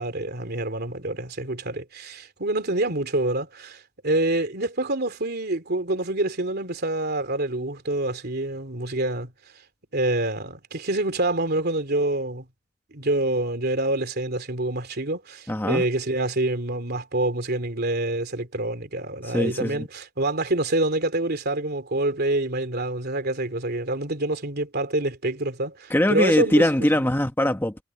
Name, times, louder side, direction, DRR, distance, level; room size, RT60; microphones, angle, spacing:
voice 1, 0.0-9.3 9.9-12.5 12.9-26.7, right 2 dB, 55° right, 3.1 m, -26 dB
voice 2, 15.5-15.8 19.2-19.9 25.9-27.8, left 1 dB, 10° left, 1.0 m, -22 dB
head